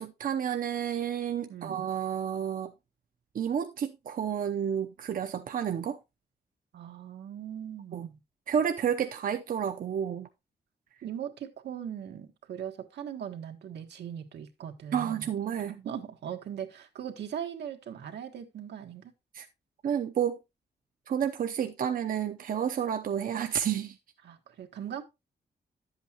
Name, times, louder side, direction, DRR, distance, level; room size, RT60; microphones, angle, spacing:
voice 1, 0.0-2.7 3.3-6.0 7.9-8.1 8.5-10.3 14.9-15.8 19.3-19.5 19.8-20.4 21.1-24.0, right 8 dB, 55° right, 0.7 m, -30 dB
voice 2, 1.5-1.9 6.7-8.2 11.0-15.3 15.7-19.1 24.2-25.0, right 9 dB, 85° right, 1.5 m, -39 dB
11.0 x 8.1 x 2.9 m
wide cardioid pair, 145°, 17 cm